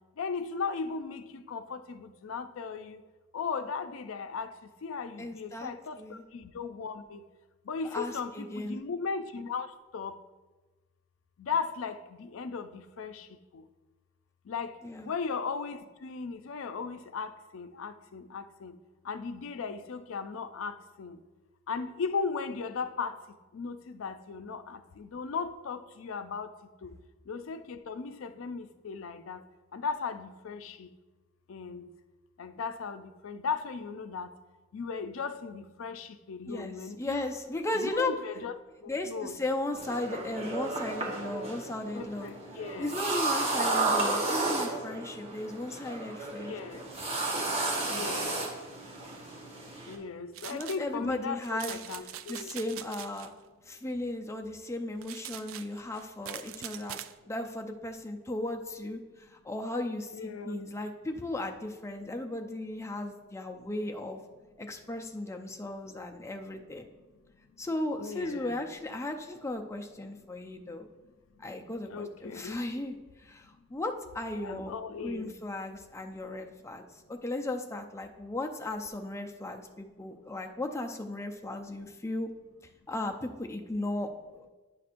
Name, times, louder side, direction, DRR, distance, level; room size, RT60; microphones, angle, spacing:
voice 1, 0.2-3.0 3.3-4.5 4.8-7.2 7.7-10.2 11.4-13.3 13.5-13.6 14.5-14.7 15.0-18.8 19.1-21.2 21.7-23.1 23.5-26.5 26.8-26.9 27.3-29.4 29.7-30.9 31.5-31.8 32.4-34.3 34.7-37.3 37.7-38.5 39.1-39.4 41.9-42.9 46.5-46.9 47.8-48.4 49.9-52.5 60.1-60.7 68.0-68.6 71.9-72.6 74.4-75.3, left 5 dB, 85° left, 0.4 m, -37 dB
voice 2, 5.2-5.7 6.0-6.2 7.9-8.8 14.8-15.1 36.5-38.1 38.9-42.3 42.8-46.8 47.9-48.1 50.5-51.8 52.3-53.3 53.7-57.0 57.3-64.2 64.6-66.8 67.6-70.9 71.4-74.7 75.0-76.8 77.1-82.3 82.9-84.5, left 2 dB, 15° left, 0.5 m, -36 dB
sound 1, 39.8-50.0, right 2 dB, 30° right, 1.1 m, -33 dB
sound 2, 50.3-50.8 51.4-53.3 55.0-57.1, right 11 dB, 90° right, 0.3 m, -43 dB
9.8 x 5.9 x 2.5 m
head